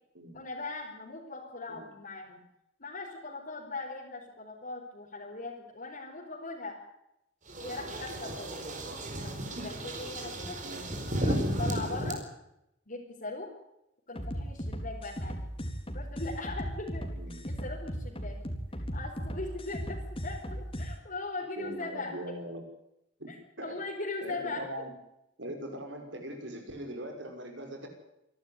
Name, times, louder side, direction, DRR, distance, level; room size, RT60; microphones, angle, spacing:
voice 1, 0.3-2.4 2.8-6.8 7.6-8.6 9.2-10.6 11.2-12.2 12.9-13.5 14.1-15.4 15.9-17.1 17.4-18.4 18.8-22.3 23.3-23.4 23.6-24.7, left 3 dB, 50° left, -4 dB, 4.5 m, -40 dB
sound 1, 7.5-12.1, right 1 dB, 45° right, 4.7 m, -34 dB
sound 2, 14.2-20.9, equal, 30° left, 3.8 m, -37 dB
voice 2, 21.6-22.6 23.2-23.8 24.2-24.9 25.4-27.9, right 1 dB, 70° right, 4 dB, 6.1 m, -41 dB
26.5 x 12.5 x 9.6 m, 0.85 s
head